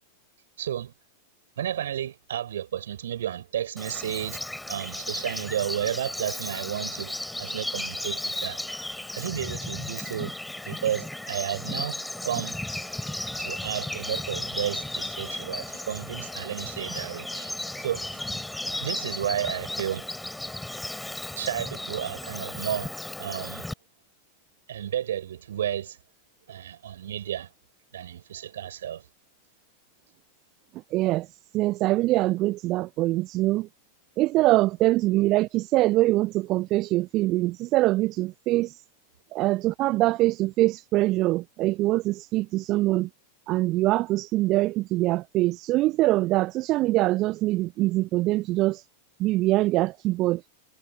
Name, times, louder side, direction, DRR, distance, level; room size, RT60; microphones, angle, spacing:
voice 1, 0.6-0.9 1.6-4.4 4.7-7.1 7.4-8.6 9.1-10.3 10.7-12.5 13.4-17.5 17.8-18.0 18.8-20.1 21.4-22.9 23.2-23.7 24.7-26.0 26.5-27.5 27.9-29.0, right 10 dB, 60° right, 6.4 m, -32 dB
Bird vocalization bird call bird song, 3.8-23.7, left 1 dB, 5° left, 5.8 m, -35 dB
voice 2, 30.9-31.3 31.5-33.7 34.2-38.8 39.3-43.1 43.5-48.8 49.2-50.4, right 18 dB, 35° right, 0.5 m, -23 dB
figure-of-eight pair, 90°, 0 cm